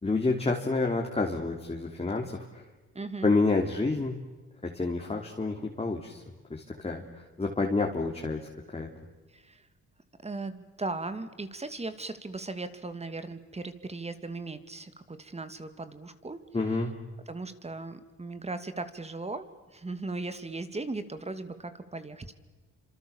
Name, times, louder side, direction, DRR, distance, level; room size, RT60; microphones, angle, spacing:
voice 1, 0.0-2.6 3.2-4.2 4.6-6.2 6.5-8.9 16.5-16.9, left 3 dB, 20° left, 1 dB, 3.2 m, -29 dB
voice 2, 2.9-3.3 9.3-9.7 10.2-16.4 17.3-19.5 19.7-22.3, right 3 dB, 20° right, 10 dB, 2.5 m, -37 dB
29.5 x 26.5 x 7.3 m, 1.3 s
cardioid pair, 90°, 30 cm